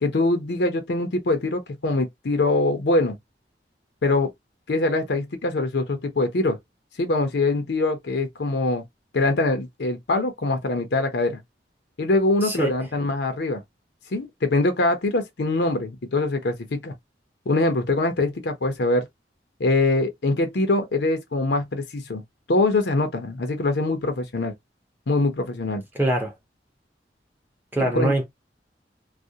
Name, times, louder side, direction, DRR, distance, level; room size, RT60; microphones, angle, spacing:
voice 1, 0.0-3.2 4.0-4.3 4.7-6.6 7.0-8.8 9.1-11.4 12.0-13.6 14.1-16.9 17.5-19.1 19.6-22.2 22.5-24.5 25.1-25.8 27.9-28.1, left 2 dB, 70° left, 0.6 m, -23 dB
voice 2, 12.4-12.7 25.9-26.3 27.7-28.2, right 1 dB, 10° right, 0.7 m, -23 dB
2.4 x 2.1 x 2.7 m
head